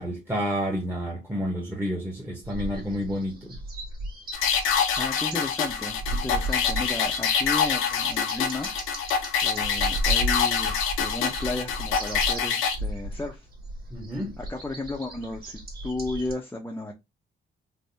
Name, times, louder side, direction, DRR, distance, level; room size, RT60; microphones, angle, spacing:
voice 1, 0.0-3.6 13.9-14.3, equal, 10° right, 0.9 m, -30 dB
sound 1, 2.4-16.3, right 1 dB, 50° right, 1.5 m, -35 dB
sound 2, 4.3-12.7, left 7 dB, 85° left, 0.7 m, -26 dB
voice 2, 5.0-8.7 9.4-13.5 14.4-16.9, left 2 dB, 10° left, 0.6 m, -34 dB
3.4 x 2.6 x 2.6 m
cardioid pair, 90°, 20 cm